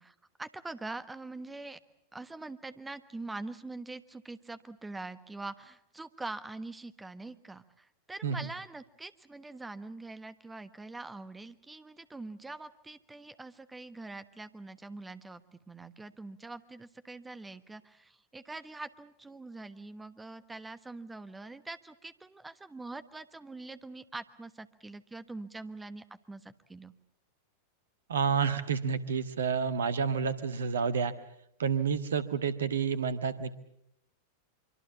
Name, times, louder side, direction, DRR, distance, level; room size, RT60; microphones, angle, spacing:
voice 1, 0.0-1.8 2.1-26.9, right 2 dB, 10° right, 12 dB, 1.3 m, -44 dB
voice 2, 28.1-31.1 31.6-33.6, right 6 dB, 65° right, 12 dB, 1.5 m, -29 dB
25.0 x 24.5 x 7.3 m, 0.75 s
figure-of-eight pair, 90°, 0 cm